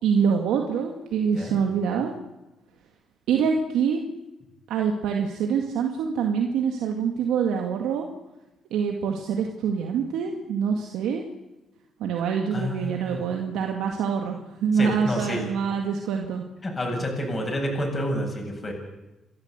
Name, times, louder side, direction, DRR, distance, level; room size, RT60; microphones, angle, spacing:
voice 1, 0.0-2.1 3.3-4.0 4.7-8.1 8.7-11.3 12.0-16.4, right 6 dB, 85° right, 2 dB, 2.2 m, -25 dB
voice 2, 12.5-13.2 14.7-15.5 16.6-18.7, equal, 25° left, 1 dB, 7.8 m, -29 dB
30.0 x 13.0 x 8.2 m, 1.0 s
cardioid pair, 90°, 0 cm